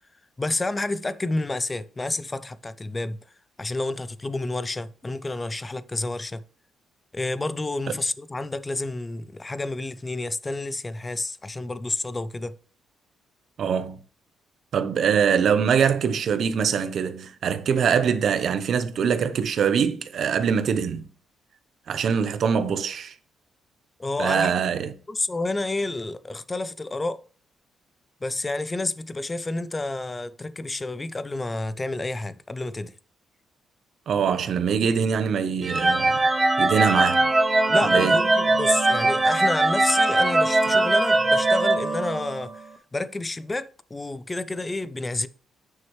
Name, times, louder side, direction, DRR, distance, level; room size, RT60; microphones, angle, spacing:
voice 1, 0.4-3.2 3.6-6.4 7.1-12.6 24.0-24.6 25.1-27.2 28.2-32.9 37.7-42.6 42.9-45.3, left 2 dB, 20° left, 0.6 m, -29 dB
voice 2, 13.6-14.0 14.7-21.1 21.9-23.1 24.2-24.9 34.1-36.3 36.6-37.3 37.8-38.2, right 7 dB, 65° right, 0.8 m, -23 dB
sound 1, 35.6-42.6, right 2 dB, 25° right, 0.7 m, -21 dB
9.1 x 6.1 x 3.2 m
cardioid pair, 85°, 0 cm